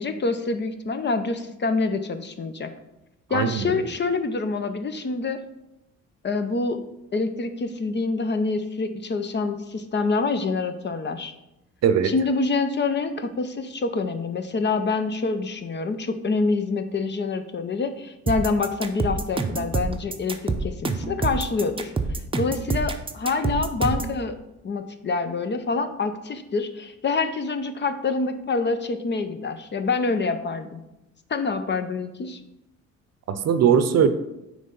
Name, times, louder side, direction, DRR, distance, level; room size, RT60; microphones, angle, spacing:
voice 1, 0.0-2.7 3.3-5.4 6.2-6.8 7.1-11.3 12.0-21.9 22.3-24.4 24.6-30.8 31.3-32.4, left 4 dB, 35° left, 9 dB, 0.7 m, -26 dB
voice 2, 3.3-3.8 11.8-12.1 33.3-34.1, right 8 dB, 60° right, 11 dB, 0.7 m, -20 dB
sound 1, 18.3-24.2, right 3 dB, 20° right, 0.7 m, -26 dB
9.2 x 3.3 x 5.4 m, 0.91 s
cardioid pair, 90°, 30 cm